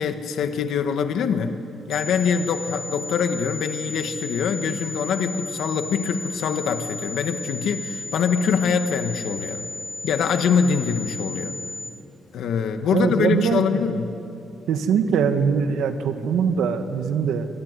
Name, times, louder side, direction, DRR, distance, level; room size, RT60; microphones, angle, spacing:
voice 1, 0.0-1.6 1.9-9.6 10.0-11.5 12.3-14.1, left 6 dB, 65° left, 7 dB, 1.6 m, -24 dB
sound 1, 1.9-11.9, left 2 dB, 10° left, 0.9 m, -34 dB
voice 2, 12.9-13.8 14.7-17.5, right 6 dB, 80° right, 8 dB, 1.7 m, -22 dB
25.0 x 22.5 x 9.8 m, 2.7 s
cardioid pair, 180°, 0 cm